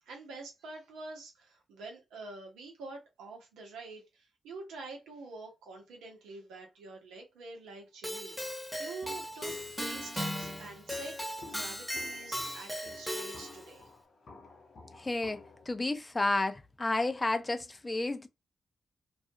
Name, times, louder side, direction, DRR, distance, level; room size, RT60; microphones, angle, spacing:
voice 1, 0.0-11.2 11.5-13.9, right 3 dB, 85° right, 0.8 m, -46 dB
Keyboard (musical), 8.0-13.7, equal, 5° left, 0.9 m, -38 dB
Walk footsteps, 9.0-15.7, left 3 dB, 55° left, 0.8 m, -53 dB
voice 2, 15.0-15.4 15.7-18.3, left 2 dB, 30° left, 0.5 m, -31 dB
2.4 x 2.3 x 2.8 m
supercardioid pair, 45°, 0 cm